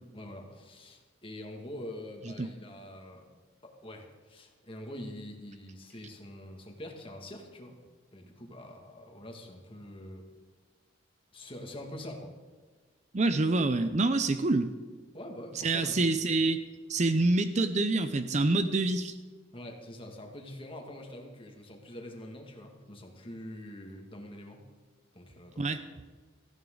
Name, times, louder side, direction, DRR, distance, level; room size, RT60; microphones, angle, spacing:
voice 1, 0.1-3.3 3.6-7.8 8.1-10.2 11.3-12.3 15.1-16.3 19.5-24.6 25.1-25.8, left 1 dB, 25° left, 2 dB, 2.1 m, -45 dB
voice 2, 13.1-14.7 15.6-16.6 16.9-19.1 25.6-25.8, right 2 dB, 35° right, 10 dB, 0.6 m, -26 dB
17.5 x 14.5 x 3.9 m, 1.4 s
head